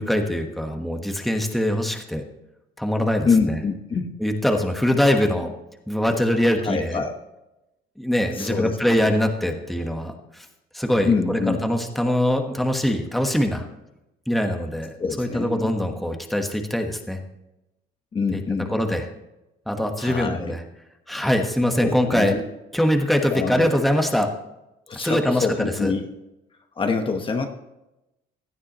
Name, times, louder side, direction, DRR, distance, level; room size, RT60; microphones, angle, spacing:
voice 1, 0.0-2.2 2.8-3.6 4.2-5.5 5.9-7.0 8.0-10.4 10.7-13.7 14.3-17.2 18.3-18.4 18.7-19.0 19.7-20.6 21.1-22.3 22.7-24.3 25.0-25.9, equal, ahead, 4 dB, 1.2 m, -23 dB
voice 2, 3.2-4.1 6.6-7.2 8.3-9.1 11.0-11.7 15.0-15.7 18.1-18.8 20.0-20.5 21.8-22.4 23.3-23.8 24.9-26.1 26.8-27.5, left 4 dB, 30° left, 5 dB, 1.1 m, -25 dB
16.5 x 11.0 x 3.0 m, 0.94 s
cardioid pair, 125°, 18 cm